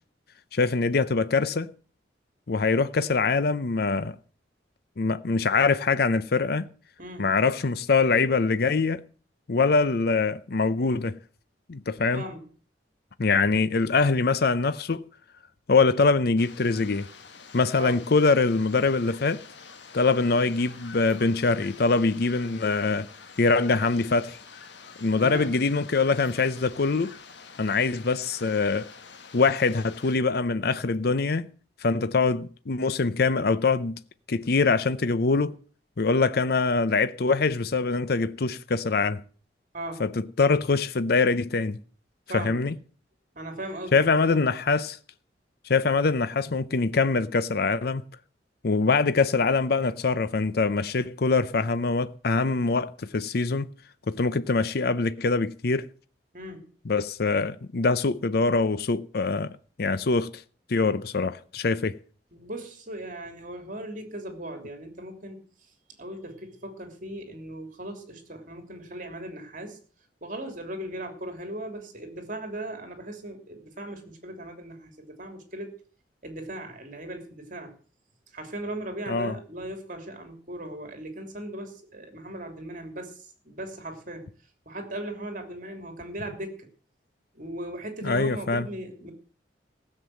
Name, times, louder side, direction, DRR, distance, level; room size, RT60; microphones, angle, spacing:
voice 1, 0.5-1.7 2.5-4.2 5.0-6.7 7.2-9.0 9.5-11.2 11.7-12.2 13.2-15.0 15.7-17.1 17.5-19.4 19.9-23.1 23.4-24.4 25.0-27.1 27.6-28.9 29.3-31.5 31.8-34.0 34.3-35.6 36.0-39.2 40.0-41.8 42.3-42.7 43.9-45.0 45.7-48.0 48.6-53.7 54.1-55.9 56.9-60.4 60.7-62.0 79.1-79.4 88.0-88.7, left 4 dB, 60° left, 0.6 m, -24 dB
voice 2, 7.0-7.3 12.1-12.4 17.8-18.0 25.2-25.5 39.7-40.0 42.3-42.6 43.3-44.0 46.0-46.1 56.3-56.6 62.3-65.4 66.0-69.8 70.2-75.8 76.2-77.7 78.3-84.3 84.7-86.7 87.3-89.1, right 1 dB, 50° right, 3.1 m, -38 dB
sound 1, 16.4-30.2, left 5 dB, 80° left, 1.4 m, -47 dB
16.0 x 7.5 x 7.6 m
head